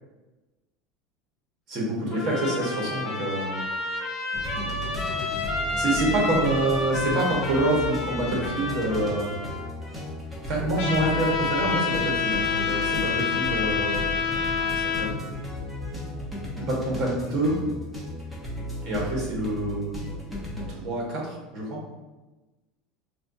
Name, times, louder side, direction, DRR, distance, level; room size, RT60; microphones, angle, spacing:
voice 1, 1.7-3.6 5.8-9.3 10.5-15.2 16.6-17.6 18.8-19.9 20.7-21.8, right 1 dB, 45° right, -2 dB, 1.2 m, -27 dB
Trumpet, 2.1-9.7, left 2 dB, 15° left, 1.1 m, -31 dB
sound 1, 4.3-20.7, left 1 dB, 5° right, 0.8 m, -35 dB
Trumpet 2, 10.8-15.1, left 6 dB, 70° left, 0.9 m, -26 dB
4.2 x 2.3 x 2.6 m, 1.1 s
supercardioid pair, 125°, 0 cm